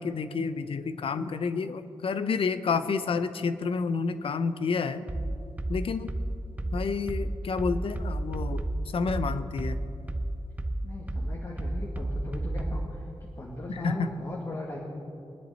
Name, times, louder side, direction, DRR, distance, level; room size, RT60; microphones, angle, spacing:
voice 1, 0.0-5.1 5.7-6.1 6.7-9.8 13.7-14.1, left 5 dB, 70° left, 12 dB, 0.7 m, -30 dB
sound 1, 5.1-12.9, right 1 dB, 15° right, 0.8 m, -31 dB
voice 2, 10.8-14.8, left 2 dB, 35° left, -3 dB, 1.7 m, -38 dB
23.0 x 10.0 x 4.1 m, 2.7 s
wide cardioid pair, 140°, 10 cm